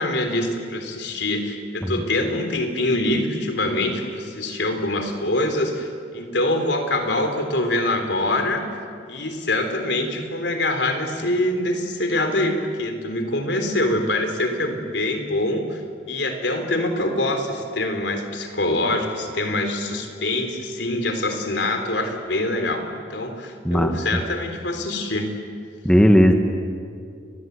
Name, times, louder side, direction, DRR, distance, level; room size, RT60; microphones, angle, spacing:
voice 1, 0.0-8.6 9.1-15.8 16.1-25.3, left 1 dB, 75° left, 6 dB, 3.6 m, -24 dB
voice 2, 23.6-24.0 25.8-26.3, equal, 5° left, 4 dB, 1.4 m, -15 dB
30.0 x 21.5 x 8.3 m, 2.3 s
head